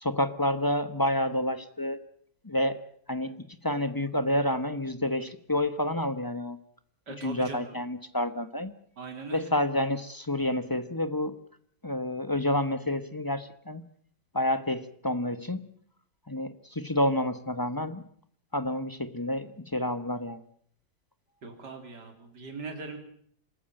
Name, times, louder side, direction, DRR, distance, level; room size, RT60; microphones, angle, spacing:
voice 1, 0.0-2.0 2.4-2.8 3.1-3.3 3.6-6.6 7.2-8.7 9.3-11.4 11.8-13.8 14.3-15.7 16.3-18.0 18.5-20.4, left 1 dB, 15° left, 12 dB, 0.8 m, -29 dB
voice 2, 7.1-7.8 9.0-9.5 21.4-23.0, right 4 dB, 60° right, 5 dB, 4.0 m, -40 dB
26.5 x 14.5 x 9.0 m, 0.63 s
omnidirectional pair, 2.1 m